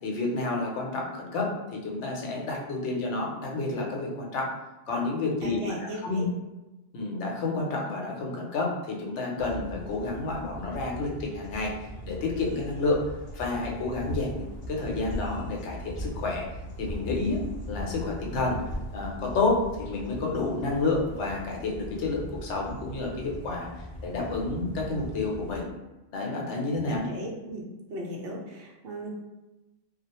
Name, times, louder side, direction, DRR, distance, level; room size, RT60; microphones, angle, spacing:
voice 1, 0.0-1.5 1.8-4.5 4.9-5.7 6.0-6.3 6.9-13.0 13.3-16.5 16.8-17.4 17.7-18.6 18.9-23.7 24.0-25.7 26.1-27.1, left 3 dB, 75° left, -1 dB, 0.9 m, -30 dB
voice 2, 5.4-6.3 26.8-27.6 27.9-29.1, right 1 dB, 65° right, -1 dB, 0.8 m, -37 dB
sound 1, 9.4-25.6, right 1 dB, 60° left, 0.3 m, -41 dB
sound 2, 13.8-15.5 15.7-16.2 16.7-19.0, left 1 dB, 45° left, 0.7 m, -38 dB
2.4 x 2.0 x 2.8 m, 1.0 s
omnidirectional pair, 1.2 m